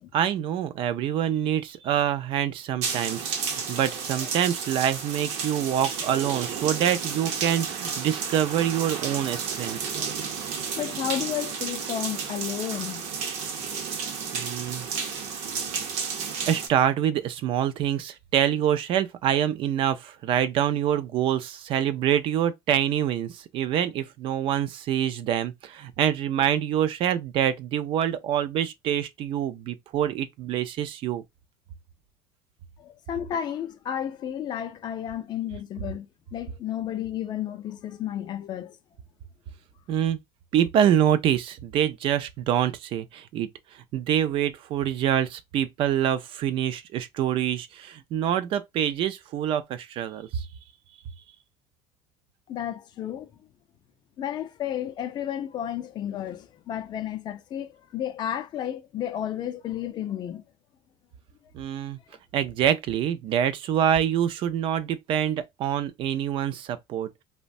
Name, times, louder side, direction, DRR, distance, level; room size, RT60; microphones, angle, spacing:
voice 1, 0.1-3.4 3.7-9.8 14.3-14.9 16.5-31.2 39.9-40.2 40.5-43.5 43.7-50.5 61.5-62.0 62.3-67.2, right 10 dB, 45° right, 0.4 m, -26 dB
sound 1, 2.8-16.7, right 6 dB, 70° right, 0.8 m, -32 dB
voice 2, 10.8-13.1 32.8-38.8 52.5-53.3 54.2-60.4, left 10 dB, 35° left, 0.4 m, -32 dB
3.0 x 2.1 x 2.5 m
cardioid pair, 150°, 12 cm